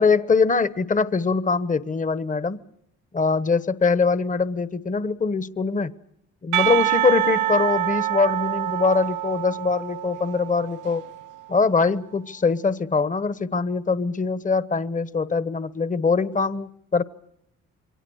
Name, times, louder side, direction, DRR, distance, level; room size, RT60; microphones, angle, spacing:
voice 1, 0.0-2.6 3.1-5.9 6.4-11.1 11.5-17.0, left 4 dB, 25° left, 1.2 m, -23 dB
Percussion, 6.5-11.4, right 13 dB, 85° right, 0.9 m, -26 dB
28.0 x 23.0 x 6.4 m
cardioid pair, 90°, 30 cm